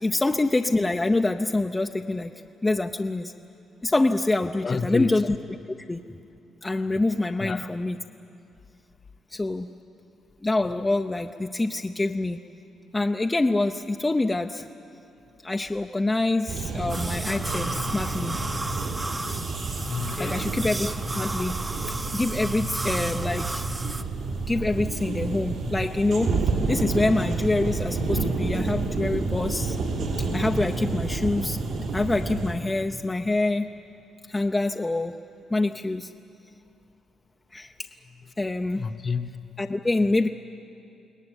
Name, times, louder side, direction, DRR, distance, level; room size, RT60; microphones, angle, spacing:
voice 1, 0.0-2.3 2.6-3.3 3.8-5.4 5.9-6.0 6.6-8.0 9.3-9.7 10.4-12.4 12.9-14.7 15.4-18.4 20.2-21.6 22.1-23.6 24.5-26.3 26.7-29.8 30.2-31.6 31.9-33.7 34.3-35.1 35.5-36.1 37.5-37.9 38.4-38.9 39.6-40.3, left 2 dB, 15° left, 4 dB, 0.7 m, -25 dB
voice 2, 4.6-5.1 7.4-7.7 19.8-20.5 38.7-39.6, left 5 dB, 40° left, 8 dB, 1.1 m, -30 dB
sound 1, 16.5-32.5, right 3 dB, 75° right, 3.7 m, -29 dB
sound 2, 16.9-24.0, right 2 dB, 20° right, 0.9 m, -34 dB
23.0 x 18.0 x 9.9 m, 2.7 s
cardioid pair, 90°, 0 cm